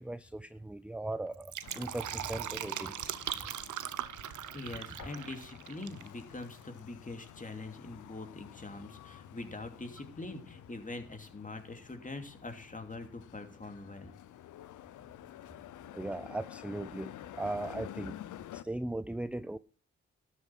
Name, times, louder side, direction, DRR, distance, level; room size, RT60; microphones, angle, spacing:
voice 1, 0.0-3.1 15.9-18.2 18.5-19.6, right 2 dB, 5° right, 16 dB, 0.5 m, -38 dB
Fill (with liquid), 1.3-6.1 6.3-6.4, right 11 dB, 75° right, 0.8 m, -39 dB
sound 1, 1.6-18.6, left 12 dB, 80° left, 0.7 m, -50 dB
voice 2, 2.9-3.2 4.5-14.1, left 2 dB, 25° left, 5 dB, 2.7 m, -44 dB
12.5 x 7.4 x 5.9 m, 0.41 s
supercardioid pair, 45°, 30 cm